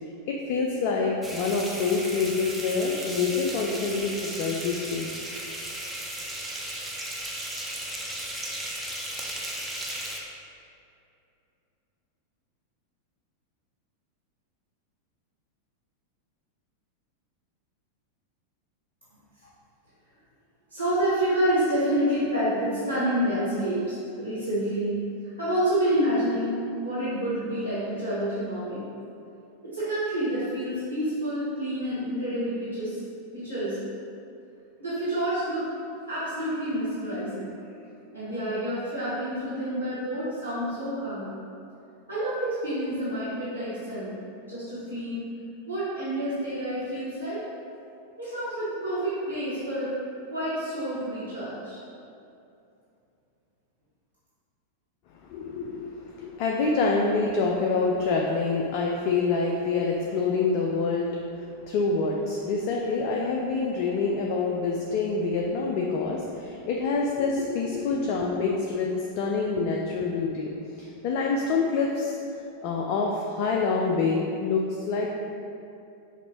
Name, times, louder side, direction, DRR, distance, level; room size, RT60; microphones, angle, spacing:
voice 1, 0.3-5.1 55.3-61.1 61.4-68.9 69.2-70.5 70.8-75.2, left 4 dB, 45° left, -1 dB, 0.3 m, -26 dB
sound 1, 1.2-10.2, right 1 dB, 5° right, 0.5 m, -35 dB
voice 2, 20.7-25.0 25.4-26.5 26.8-28.8 29.6-33.0 33.3-33.9 34.8-35.7 36.1-37.5 38.1-41.4 42.1-44.2 44.5-45.3 45.7-47.4 48.2-49.9 50.3-51.8, right 1 dB, 90° right, -13 dB, 1.1 m, -28 dB
5.3 x 2.5 x 2.9 m, 2.6 s
figure-of-eight pair, 90°, 0 cm